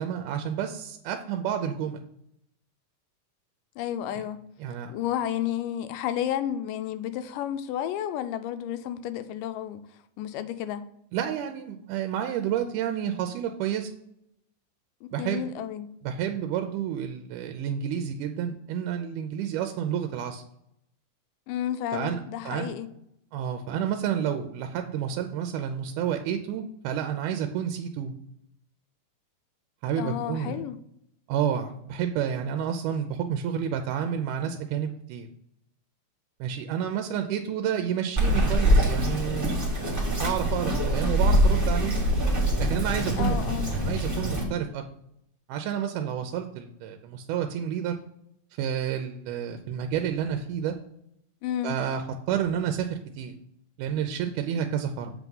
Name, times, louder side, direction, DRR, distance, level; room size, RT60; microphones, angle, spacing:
voice 1, 0.0-2.0 4.2-4.3 4.6-4.9 11.1-13.9 15.1-15.5 16.0-20.4 21.9-22.2 22.5-22.7 23.3-28.1 29.8-30.6 31.3-35.3 36.4-41.9 42.6-43.4 43.7-44.8 45.5-48.0 48.6-50.8 51.6-52.0 52.3-53.3 53.8-55.1, right 9 dB, 80° right, 2.0 m, -30 dB
voice 2, 3.8-4.4 4.9-9.8 10.2-10.8 15.0-15.9 21.5-22.9 30.0-30.8 43.2-43.7 51.4-51.8, left 10 dB, 85° left, 2.2 m, -31 dB
Bird vocalization bird call bird song, 38.2-44.4, equal, 25° right, 0.4 m, -24 dB
7.5 x 3.5 x 5.3 m
omnidirectional pair, 3.7 m